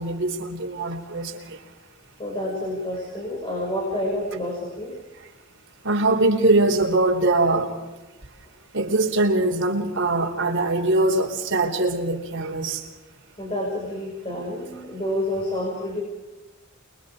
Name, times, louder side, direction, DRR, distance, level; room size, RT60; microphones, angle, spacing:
voice 1, 0.0-1.6 5.8-7.7 8.7-12.8, right 2 dB, 60° right, 4.0 m, -22 dB
voice 2, 2.2-4.9 13.4-16.0, left 1 dB, 25° left, 6.6 m, -28 dB
29.0 x 23.5 x 5.0 m
head